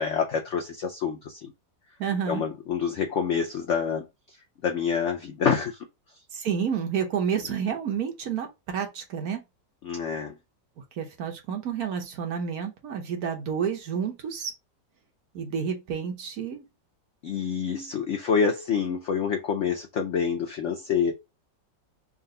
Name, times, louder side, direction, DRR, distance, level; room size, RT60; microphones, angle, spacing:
voice 1, 0.0-1.5 2.3-4.0 4.6-5.8 9.8-10.3 17.2-21.1, left 6 dB, 85° left, 0.6 m, -27 dB
voice 2, 2.0-2.4 6.3-9.4 11.0-14.5 15.3-16.6, right 7 dB, 60° right, 1.2 m, -30 dB
3.8 x 2.5 x 3.6 m
omnidirectional pair, 2.0 m